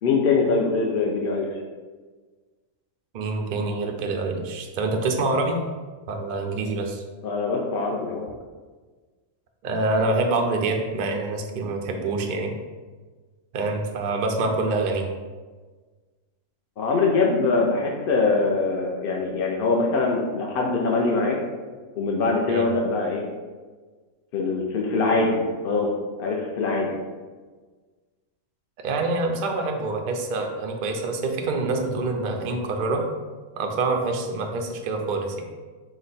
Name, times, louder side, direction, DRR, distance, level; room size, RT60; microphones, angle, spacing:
voice 1, 0.0-1.5 7.2-8.2 16.8-21.4 22.0-23.2 24.3-25.9 26.2-26.9, left 3 dB, 65° left, -1 dB, 0.5 m, -23 dB
voice 2, 3.1-5.6 6.1-7.0 9.6-12.5 13.5-15.0 22.5-22.7 28.8-33.0 33.6-35.4, right 3 dB, 80° right, 2 dB, 0.4 m, -26 dB
5.0 x 2.2 x 4.0 m, 1.4 s
omnidirectional pair, 1.5 m